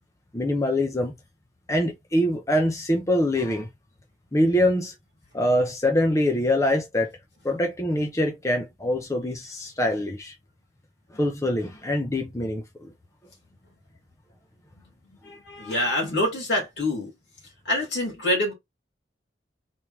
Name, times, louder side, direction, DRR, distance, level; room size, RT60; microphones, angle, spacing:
voice 1, 0.3-1.1 1.7-3.7 4.3-4.9 5.3-7.1 7.4-10.3 11.1-12.9, left 1 dB, 15° left, 0.8 m, -24 dB
voice 2, 15.2-17.1 17.6-18.5, left 1 dB, 75° left, 2.8 m, -26 dB
4.4 x 3.6 x 3.1 m
head